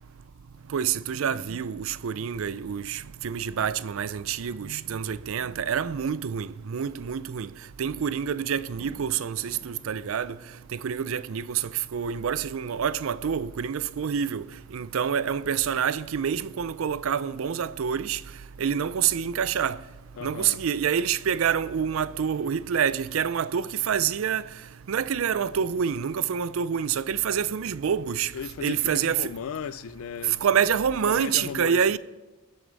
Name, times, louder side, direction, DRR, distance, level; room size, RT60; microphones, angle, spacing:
voice 1, 0.7-7.5 7.8-10.4 10.7-14.4 14.7-18.2 18.6-19.8 20.2-24.4 24.9-28.3 28.6-29.3 30.4-32.0, right 7 dB, 75° right, 0.4 m, -27 dB
Thunder / Rain, 6.6-23.5, right 1 dB, 20° left, 3.8 m, -60 dB
voice 2, 20.2-20.6 28.3-30.4 31.1-32.0, left 7 dB, 80° left, 0.4 m, -36 dB
21.5 x 8.0 x 4.0 m
head